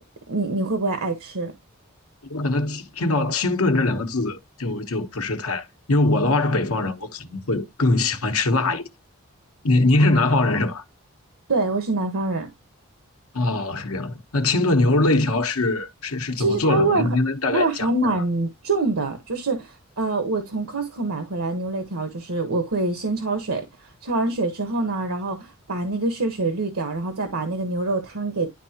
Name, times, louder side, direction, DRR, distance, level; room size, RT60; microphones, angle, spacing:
voice 1, 0.3-1.5 10.0-10.3 11.5-12.5 16.4-17.2 17.5-28.5, right 2 dB, 85° right, 1.3 m, -25 dB
voice 2, 2.2-8.9 9.6-10.8 13.3-18.2, left 2 dB, 85° left, 1.1 m, -22 dB
11.0 x 3.7 x 2.8 m
head